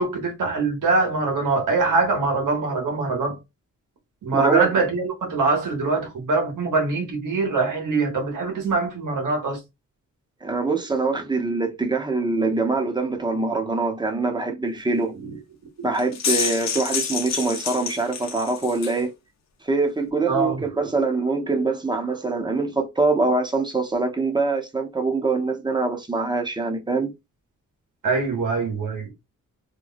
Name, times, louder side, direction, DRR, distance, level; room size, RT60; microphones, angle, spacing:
voice 1, 0.0-3.4 4.2-9.6 15.2-15.4 20.3-20.7 28.0-29.1, right 3 dB, 80° right, 1.4 m, -23 dB
voice 2, 4.3-4.7 10.4-15.2 15.8-19.1 19.6-27.1, right 3 dB, 15° right, 0.8 m, -24 dB
sound 1, 15.9-19.0, left 6 dB, 60° left, 0.7 m, -28 dB
3.0 x 2.2 x 4.0 m
wide cardioid pair, 125°, 31 cm